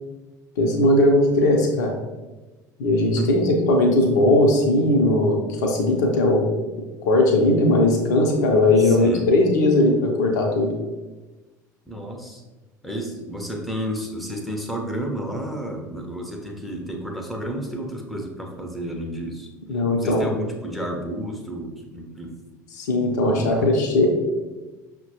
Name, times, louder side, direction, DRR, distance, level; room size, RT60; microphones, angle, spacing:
voice 1, 0.6-1.9 2.8-6.5 7.0-10.7 19.7-20.3 22.7-24.1, left 2 dB, 65° left, 1 dB, 0.6 m, -19 dB
voice 2, 8.8-9.3 11.9-12.4 12.8-19.5 20.0-22.4 23.2-23.7, right 1 dB, ahead, 2 dB, 0.6 m, -31 dB
5.7 x 2.2 x 2.8 m, 1.2 s
figure-of-eight pair, 65°, 10 cm